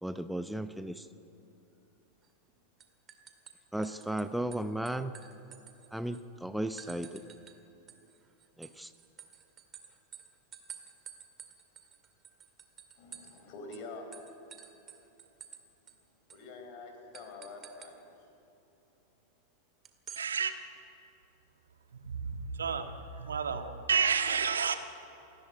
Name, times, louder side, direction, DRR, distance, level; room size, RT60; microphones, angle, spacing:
voice 1, 0.0-1.1 3.7-5.1 5.9-7.3 8.6-8.9, right 1 dB, ahead, 11 dB, 0.7 m, -35 dB
sound 1, 2.2-2.5 2.8-4.2 4.5-6.2 6.8-7.6 7.9-13.4 13.7-13.8 14.1-15.6 15.9-16.0 16.3-16.5 17.1-17.9 19.8-20.3, right 8 dB, 25° right, 2.1 m, -50 dB
voice 2, 13.0-14.1 16.3-18.1, left 3 dB, 45° left, 4 dB, 4.8 m, -46 dB
voice 3, 20.2-20.5 22.0-24.7, right 6 dB, 70° right, 7 dB, 1.6 m, -30 dB
28.0 x 14.5 x 9.5 m, 2.9 s
figure-of-eight pair, 90°, 0 cm